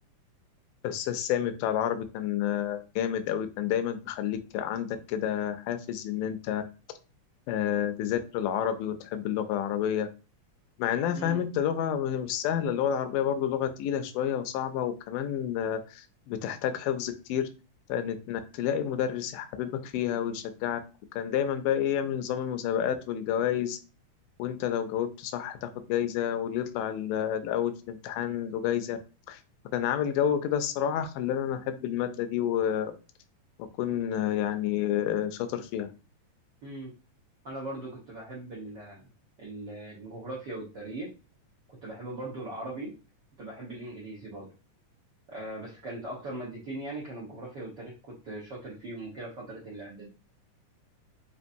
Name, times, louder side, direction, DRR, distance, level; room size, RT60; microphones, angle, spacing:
voice 1, 0.8-6.6 7.5-10.1 10.8-17.5 17.9-20.8 21.1-23.8 24.4-29.0 29.3-29.4 29.7-32.9 33.8-35.9, left 10 dB, 90° left, 8 dB, 2.2 m, -29 dB
voice 2, 37.4-39.1 39.4-41.1 41.8-42.9 43.4-44.5 45.3-50.1, right 2 dB, 70° right, -3 dB, 1.0 m, -39 dB
5.3 x 2.9 x 2.6 m, 0.33 s
omnidirectional pair, 3.7 m